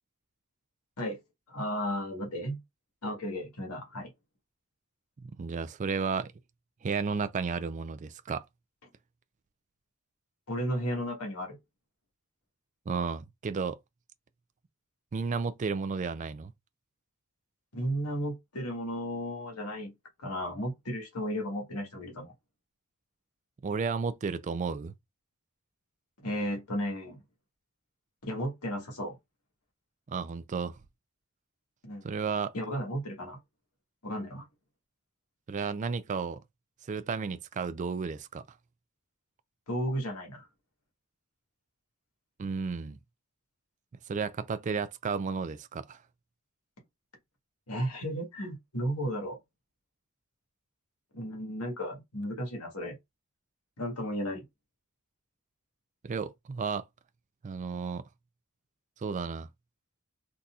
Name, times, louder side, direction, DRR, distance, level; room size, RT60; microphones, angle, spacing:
voice 1, 1.5-2.6 3.0-4.1 10.5-11.6 17.7-19.9 20.2-22.3 26.2-27.2 28.2-29.2 31.8-32.0 32.5-33.4 34.0-34.4 39.7-40.5 47.7-49.4 51.1-53.0 53.8-54.4, equal, 85° left, 1.5 m, -34 dB
voice 2, 5.2-6.3 6.8-8.4 12.9-13.8 15.1-16.5 23.6-24.9 30.1-30.8 32.0-32.5 35.5-36.4 36.9-38.4 42.4-43.0 44.1-46.0 56.0-56.8 57.4-58.0 59.0-59.5, right 5 dB, 35° right, 0.3 m, -33 dB
4.0 x 2.6 x 2.3 m
head